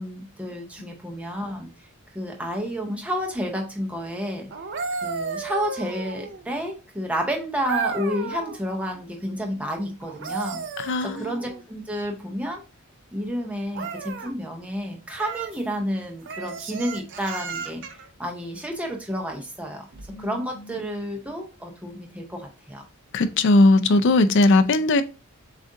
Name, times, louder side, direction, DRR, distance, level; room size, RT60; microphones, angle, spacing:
voice 1, 0.0-1.9 2.1-4.5 5.0-10.6 11.0-12.6 13.1-17.8 18.2-19.9 20.2-22.8, equal, 5° right, 0.7 m, -30 dB
sound 1, 4.5-6.5 7.6-8.6 10.0-11.6 13.7-14.3 15.1-15.6 16.2-18.1 19.9-20.1, right 5 dB, 55° right, 0.5 m, -33 dB
voice 2, 10.8-11.4 20.1-20.3 23.1-25.0, left 2 dB, 55° left, 0.4 m, -18 dB
7.2 x 2.5 x 2.6 m
head